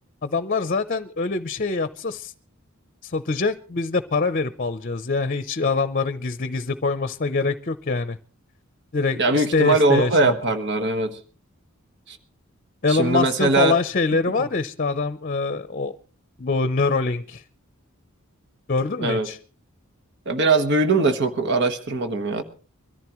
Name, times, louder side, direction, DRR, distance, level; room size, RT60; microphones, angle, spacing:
voice 1, 0.2-2.3 3.0-8.2 8.9-10.3 12.8-15.9 16.4-17.4 18.7-19.4, left 3 dB, 40° left, 13 dB, 0.7 m, -24 dB
voice 2, 9.2-11.2 12.1-12.2 12.9-13.8 14.4-14.5 19.0-19.3 20.2-22.4, right 3 dB, 55° right, 8 dB, 1.4 m, -21 dB
23.5 x 14.0 x 3.1 m, 0.38 s
head